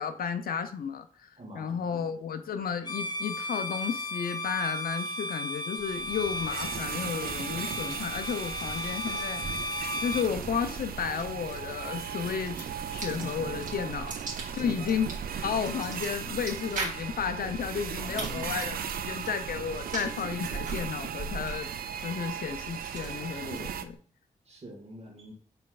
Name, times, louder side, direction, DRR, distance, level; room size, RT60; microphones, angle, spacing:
voice 1, 0.0-9.4 10.0-14.1 14.5-15.1 15.4-18.8 19.1-21.7 22.0-23.9, left 7 dB, 85° left, 0.5 m, -33 dB
voice 2, 1.4-2.0 13.2-13.9 14.6-14.8 18.0-18.7 23.5-23.9 24.5-25.3, right 1 dB, 45° right, 1.6 m, -44 dB
Bowed string instrument, 2.8-10.3, left 1 dB, 30° left, 0.5 m, -35 dB
sound 1, 5.8-24.0, right 3 dB, 60° right, 1.5 m, -42 dB
sound 2, 5.9-23.8, right 8 dB, 85° right, 0.4 m, -37 dB
5.5 x 4.2 x 2.3 m
wide cardioid pair, 110°, 15 cm